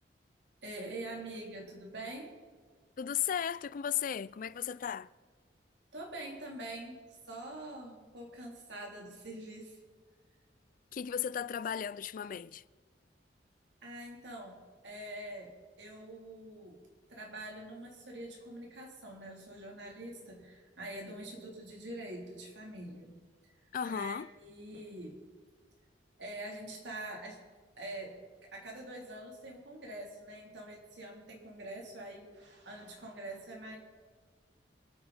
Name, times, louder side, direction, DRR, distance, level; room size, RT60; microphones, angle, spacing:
voice 1, 0.6-2.3 5.9-9.8 13.8-15.5 15.8-16.8 17.1-23.1 23.8-25.2 26.2-27.4 27.8-28.2 28.5-33.8, right 1 dB, 85° right, 3.7 m, -45 dB
voice 2, 3.0-5.1 10.9-12.6 23.7-24.3, left 8 dB, 50° left, 0.4 m, -35 dB
27.0 x 9.4 x 4.4 m
head